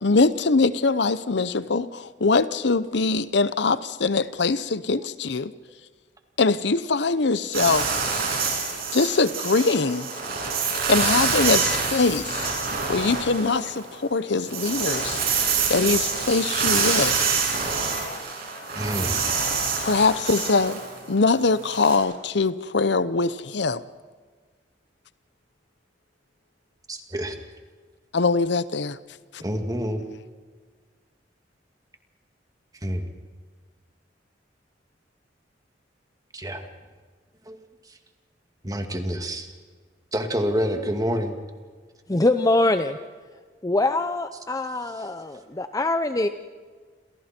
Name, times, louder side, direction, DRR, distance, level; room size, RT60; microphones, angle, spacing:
voice 1, 0.0-5.5 6.4-7.9 8.9-10.1 10.9-12.5 12.9-15.4 15.7-17.1 19.8-20.8 21.1-23.8 28.1-29.0 29.3-29.4, left 3 dB, 70° left, 15 dB, 0.8 m, -22 dB
sound 1, 7.5-13.9 14.3-22.0, right 5 dB, 55° right, 7.5 m, -26 dB
voice 2, 18.7-19.2 26.9-27.4 29.4-30.0 32.8-33.0 36.3-36.6 38.6-39.5 40.1-41.3, equal, 20° right, 5 dB, 2.3 m, -27 dB
voice 3, 42.1-43.0 43.6-46.3, left 2 dB, 20° left, 9 dB, 0.7 m, -23 dB
29.5 x 27.5 x 4.5 m, 1.5 s
head